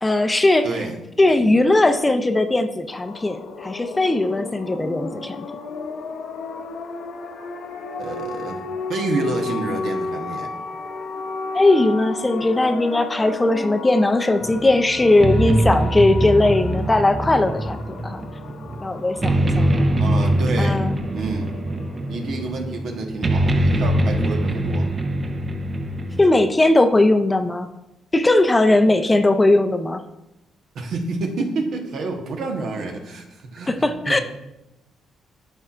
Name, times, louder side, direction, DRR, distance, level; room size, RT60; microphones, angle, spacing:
voice 1, 0.0-0.7 1.2-5.5 11.5-18.2 18.8-20.0 20.6-21.0 26.2-27.7 28.1-30.0 33.7-34.2, left 2 dB, 20° left, 8 dB, 0.5 m, -18 dB
voice 2, 0.6-1.0 1.3-1.5 8.0-10.5 20.0-20.8 21.1-21.5 22.1-24.9 30.7-33.7 34.1-34.2, right 3 dB, 70° right, 3 dB, 1.2 m, -28 dB
sound 1, 3.0-22.4, left 3 dB, 75° left, 0.7 m, -33 dB
sound 2, 14.4-26.2, right 1 dB, 30° right, 0.7 m, -23 dB
12.0 x 4.4 x 2.5 m, 0.92 s
cardioid pair, 90°, 0 cm